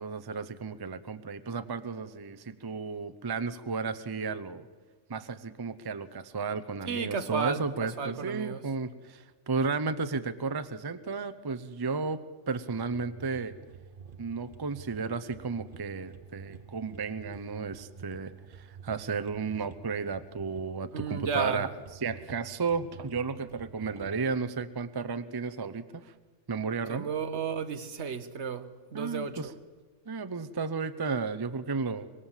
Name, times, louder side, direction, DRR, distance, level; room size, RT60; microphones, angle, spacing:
voice 1, 0.0-4.7 5.1-13.6 14.2-18.3 18.6-21.7 22.0-26.1 26.5-27.1 28.9-29.5 30.1-32.1, right 4 dB, 25° right, 0.7 m, -33 dB
voice 2, 6.8-8.7 20.9-21.7 26.9-29.5, right 5 dB, 65° right, 1.4 m, -33 dB
sound 1, 12.7-24.3, right 6 dB, 50° right, 1.0 m, -49 dB
24.5 x 22.5 x 7.4 m
omnidirectional pair, 1.3 m